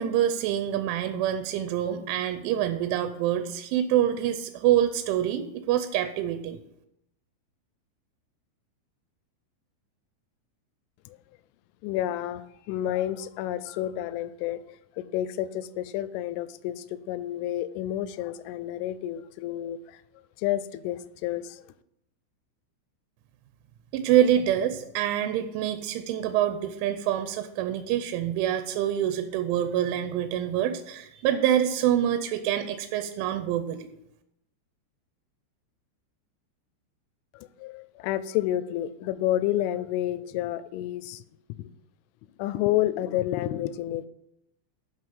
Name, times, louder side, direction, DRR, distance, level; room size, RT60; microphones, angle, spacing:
voice 1, 0.0-6.6 23.9-33.9, right 11 dB, 85° right, 9 dB, 3.1 m, -26 dB
voice 2, 11.8-20.0 20.4-21.6 37.3-41.2 41.5-41.7 42.4-44.1, left 13 dB, 85° left, 15 dB, 2.9 m, -30 dB
7.7 x 6.3 x 7.3 m, 0.81 s
omnidirectional pair, 5.5 m